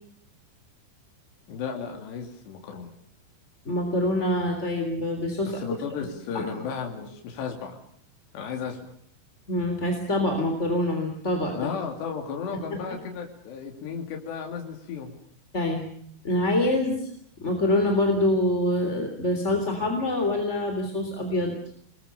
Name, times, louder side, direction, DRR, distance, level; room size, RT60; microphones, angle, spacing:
voice 1, 1.5-2.9 5.4-7.8 8.3-8.9 11.5-15.2, left 6 dB, 75° left, 3 dB, 4.9 m, -34 dB
voice 2, 3.6-5.8 6.3-6.4 9.5-11.7 12.7-12.8 15.5-15.9 16.2-17.1 17.4-21.5, left 1 dB, 15° left, 4 dB, 3.3 m, -25 dB
28.5 x 21.5 x 6.9 m, 0.66 s
omnidirectional pair, 5.0 m